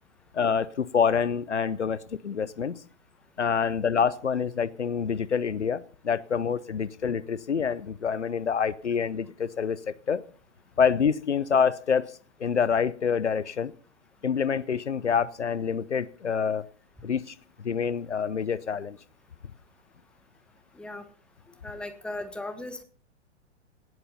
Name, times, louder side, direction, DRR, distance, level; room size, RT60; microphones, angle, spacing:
voice 1, 0.3-2.8 3.4-10.2 10.8-12.1 12.4-13.7 14.2-16.6 17.0-19.0, left 6 dB, 75° left, 17 dB, 0.8 m, -27 dB
voice 2, 21.6-22.8, left 2 dB, 5° left, 8 dB, 1.4 m, -37 dB
18.0 x 8.0 x 5.6 m, 0.43 s
figure-of-eight pair, 105°, 35 cm